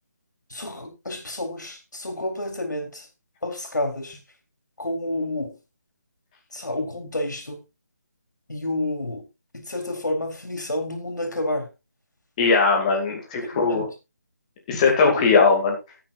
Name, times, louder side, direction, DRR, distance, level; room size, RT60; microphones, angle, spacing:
voice 1, 0.5-3.1 3.4-4.2 4.8-5.5 6.5-7.6 8.5-9.2 9.5-11.7 13.4-13.9 15.0-15.4, left 1 dB, 85° left, 4.1 m, -29 dB
voice 2, 12.4-13.9 14.7-15.7, left 4 dB, 25° left, 2.4 m, -19 dB
15.0 x 8.9 x 2.6 m
figure-of-eight pair, 160°, 9 cm